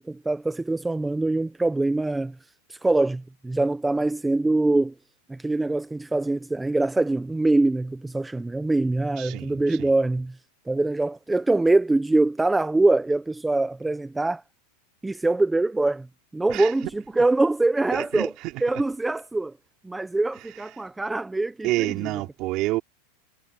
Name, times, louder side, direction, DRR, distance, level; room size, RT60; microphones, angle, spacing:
voice 1, 0.0-2.4 2.7-4.9 5.3-10.4 10.7-14.4 15.0-16.1 16.3-18.3 18.6-19.5 19.8-21.9, right 2 dB, 5° right, 0.6 m, -23 dB
voice 2, 9.2-9.9 16.5-16.7 17.9-18.5 21.6-22.8, right 18 dB, 40° right, 3.4 m, -28 dB
supercardioid pair, 160°, 0 cm